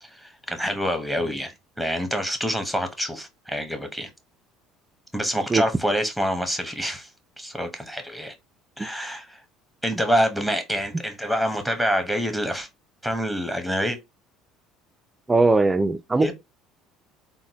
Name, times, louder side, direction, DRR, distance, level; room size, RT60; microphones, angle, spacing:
voice 1, 0.0-4.1 5.1-7.1 7.4-8.3 8.8-9.4 9.8-12.7 13.0-14.0 16.2-16.3, equal, 5° left, 0.9 m, -26 dB
voice 2, 15.3-16.3, right 3 dB, 20° right, 0.4 m, -20 dB
3.7 x 2.1 x 2.9 m
supercardioid pair, 85°, 0 cm